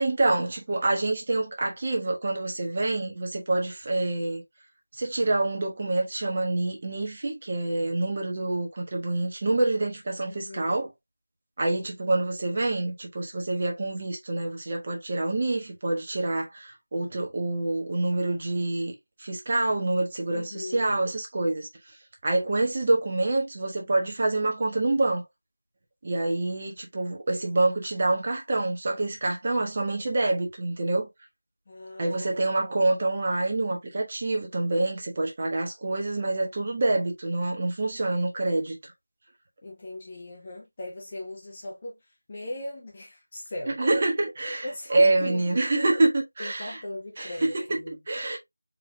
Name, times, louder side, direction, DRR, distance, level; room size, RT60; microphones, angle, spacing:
voice 1, 0.0-4.4 5.0-10.9 11.6-22.0 22.2-25.2 26.0-31.1 32.0-38.9 43.7-46.8 47.2-48.4, right 2 dB, 25° right, 1.2 m, -27 dB
voice 2, 10.3-10.8 20.3-20.9 31.7-32.5 39.6-43.8 44.6-45.4 46.4-47.9, left 1 dB, 20° left, 0.6 m, -39 dB
4.6 x 3.5 x 2.2 m
figure-of-eight pair, 175°, 0 cm